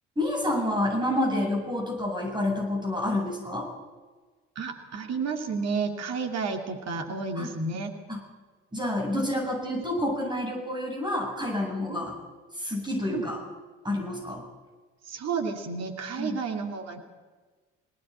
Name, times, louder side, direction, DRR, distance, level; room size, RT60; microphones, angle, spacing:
voice 1, 0.2-3.7 7.3-7.5 8.1-8.2 8.7-12.1 12.5-13.4 13.8-14.4 16.2-16.4, left 1 dB, 15° right, 0 dB, 7.9 m, -28 dB
voice 2, 4.6-7.9 11.9-12.1 13.1-13.3 15.1-17.0, right 4 dB, 50° right, 4 dB, 2.8 m, -31 dB
22.5 x 18.5 x 8.8 m, 1.3 s
figure-of-eight pair, 50°, 35 cm